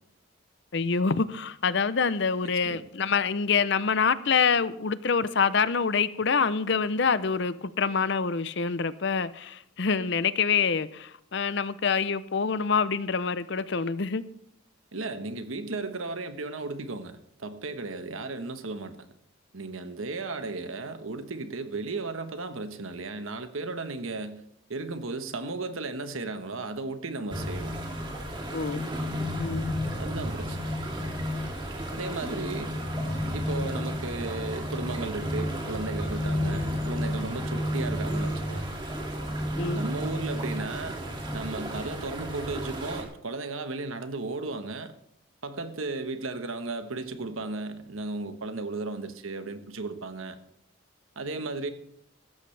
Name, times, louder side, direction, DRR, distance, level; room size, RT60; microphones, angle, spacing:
voice 1, 0.7-14.2 28.5-28.9 29.3-29.8 39.6-39.8, left 5 dB, 55° left, 0.6 m, -26 dB
voice 2, 14.9-19.0 19.5-24.4 24.7-27.8 30.0-30.7 31.9-32.8 33.3-38.7 39.7-41.0 41.3-44.9 45.4-50.4 51.2-51.7, right 3 dB, 75° right, 1.2 m, -35 dB
sound 1, 27.3-43.0, equal, 20° right, 2.4 m, -32 dB
16.0 x 13.5 x 3.4 m
head